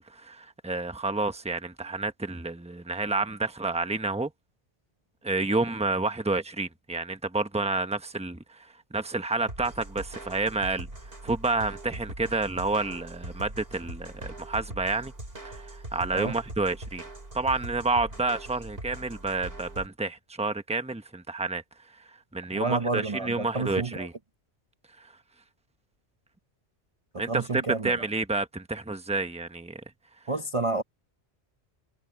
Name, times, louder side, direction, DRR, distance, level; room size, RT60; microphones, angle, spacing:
voice 1, 0.0-4.3 5.2-10.9 11.2-15.1 15.4-17.0 17.3-21.6 22.3-24.1 27.2-29.8, right 3 dB, 5° right, 1.0 m, -29 dB
sound 1, 9.5-19.9, right 2 dB, 60° right, 4.7 m, -41 dB
voice 2, 22.5-24.1 27.1-28.1 30.3-30.8, right 3 dB, 30° right, 0.9 m, -30 dB
omnidirectional pair, 1.1 m